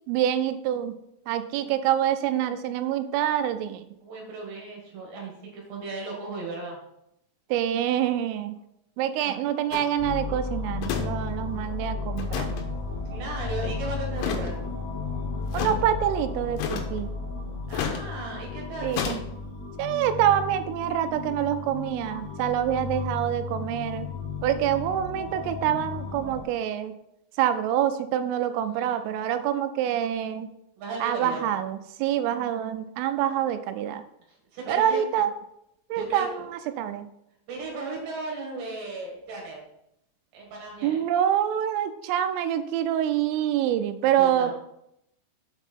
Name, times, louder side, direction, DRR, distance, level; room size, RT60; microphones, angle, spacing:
voice 1, 0.1-0.9 1.3-3.8 7.5-8.6 9.0-12.5 15.5-17.1 18.8-19.2 19.8-24.1 24.4-26.9 27.4-30.5 31.0-34.0 34.7-35.3 35.9-37.1 40.8-44.5, right 10 dB, 85° right, 10 dB, 3.1 m, -26 dB
voice 2, 4.0-6.8 9.2-9.4 13.1-14.6 17.7-19.0 28.6-29.0 30.8-31.5 34.5-35.0 36.0-36.5 37.5-39.6 40.3-41.0 44.2-44.5, right 3 dB, 65° right, -1 dB, 3.6 m, -36 dB
sound 1, 9.7-9.9 10.8-11.1 11.3-11.4 12.2-12.6 14.2-14.6 15.5-15.8 16.6-17.0 17.7-18.0 18.9-19.2, left 8 dB, 80° left, 3.6 m, -30 dB
sound 2, 10.0-26.4, left 4 dB, 65° left, 4.3 m, -34 dB
7.9 x 6.1 x 4.4 m, 0.79 s
omnidirectional pair, 5.9 m